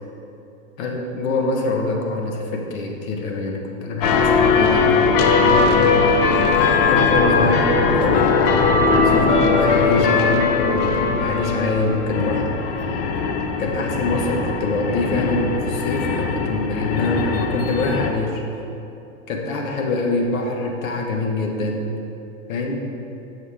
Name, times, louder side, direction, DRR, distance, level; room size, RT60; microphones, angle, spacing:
voice 1, 0.8-6.0 6.8-12.6 12.9-13.0 13.6-18.4 19.3-21.9 22.5-22.9, left 2 dB, 75° left, 1 dB, 1.1 m, -25 dB
sound 1, 4.0-18.1, left 4 dB, 35° left, 0.4 m, -19 dB
6.5 x 5.8 x 3.4 m, 2.8 s
hypercardioid pair, 125°, 41 cm